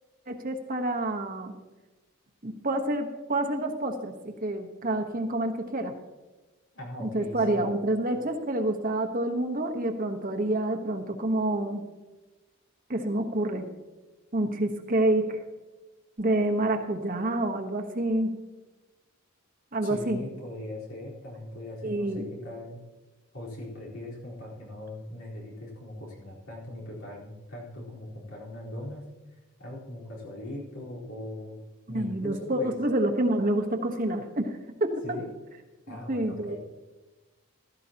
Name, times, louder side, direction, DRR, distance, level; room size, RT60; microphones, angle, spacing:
voice 1, 0.3-1.6 2.4-5.9 7.0-11.8 12.9-13.7 14.3-15.4 16.2-18.4 19.7-20.2 21.8-22.4 31.9-35.2 35.9-36.6, right 1 dB, 40° right, 4 dB, 1.2 m, -28 dB
voice 2, 6.7-7.6 19.8-22.8 23.3-29.1 29.6-31.6 31.9-32.7 35.0-35.3 35.9-36.6, left 1 dB, 80° left, -4 dB, 4.2 m, -40 dB
15.5 x 13.5 x 2.9 m, 1.2 s
head